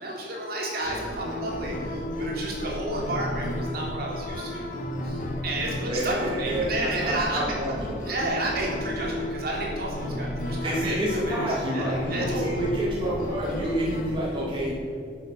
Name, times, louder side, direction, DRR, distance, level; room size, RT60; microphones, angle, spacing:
voice 1, 0.0-4.7 5.0-7.5 8.0-11.0 11.3-12.7, right 1 dB, 60° right, -3 dB, 3.4 m, -31 dB
sound 1, 0.8-14.7, left 1 dB, 50° left, 1.8 m, -33 dB
voice 2, 5.7-7.9 10.6-14.8, right 1 dB, 30° right, -6 dB, 2.5 m, -28 dB
12.0 x 8.0 x 6.6 m, 2.5 s
head